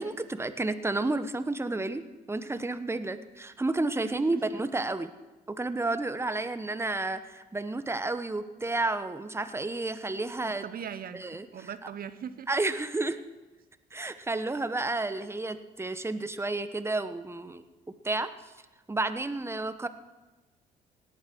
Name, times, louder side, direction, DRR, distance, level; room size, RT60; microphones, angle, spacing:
voice 1, 0.0-2.0 2.3-5.1 5.5-10.6 11.1-11.7 12.5-13.2 13.9-17.6 18.0-18.3 18.9-19.9, right 2 dB, 15° right, 11 dB, 1.1 m, -31 dB
voice 2, 4.0-4.6 10.5-12.5, right 8 dB, 50° right, 13 dB, 1.1 m, -40 dB
18.0 x 8.8 x 6.1 m, 1.2 s
supercardioid pair, 60°, 19 cm